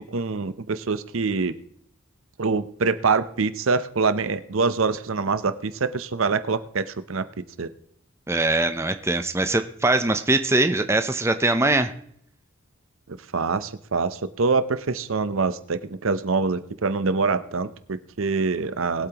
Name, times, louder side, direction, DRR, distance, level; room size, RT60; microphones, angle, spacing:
voice 1, 0.0-1.5 2.4-7.3 7.6-7.7 13.3-19.1, right 4 dB, 70° right, 13 dB, 0.7 m, -25 dB
voice 2, 8.3-11.9, right 2 dB, 10° right, 8 dB, 0.6 m, -22 dB
21.5 x 8.4 x 3.0 m, 0.67 s
head